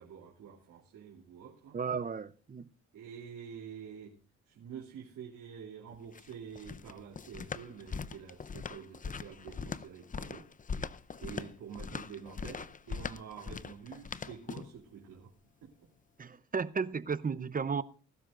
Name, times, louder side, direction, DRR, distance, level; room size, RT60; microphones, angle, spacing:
voice 1, 0.0-1.8 2.9-4.2 4.5-10.5 11.2-15.3 15.6-15.9, right 7 dB, 80° right, 3.1 m, -48 dB
voice 2, 1.7-2.7 16.2-17.8, right 5 dB, 30° right, 0.7 m, -34 dB
sound 1, 5.9-14.8, left 5 dB, 25° left, 0.6 m, -41 dB
20.5 x 12.0 x 2.6 m
cardioid pair, 90°, 30 cm